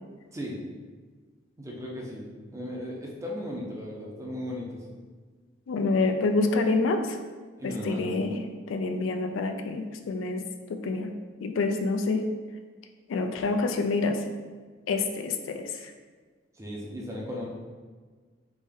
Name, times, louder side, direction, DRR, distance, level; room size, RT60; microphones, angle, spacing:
voice 1, 1.6-4.8 7.6-8.1 16.6-17.5, equal, 15° right, -2 dB, 0.6 m, -36 dB
voice 2, 5.7-7.0 7.6-10.4 10.7-11.1 11.4-12.2 13.1-14.2 14.9-15.7, left 3 dB, 85° left, 6 dB, 0.3 m, -27 dB
3.5 x 2.6 x 3.5 m, 1.5 s
head